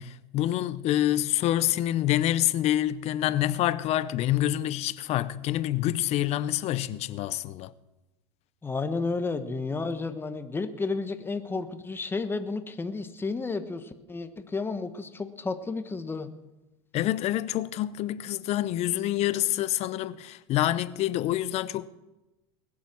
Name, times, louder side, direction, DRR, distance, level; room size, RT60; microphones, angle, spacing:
voice 1, 0.0-7.7 16.9-21.9, left 13 dB, 50° left, 0.7 m, -27 dB
voice 2, 8.6-16.3, left 3 dB, 15° left, 1.2 m, -32 dB
20.5 x 7.4 x 6.1 m
supercardioid pair, 105°, 14 cm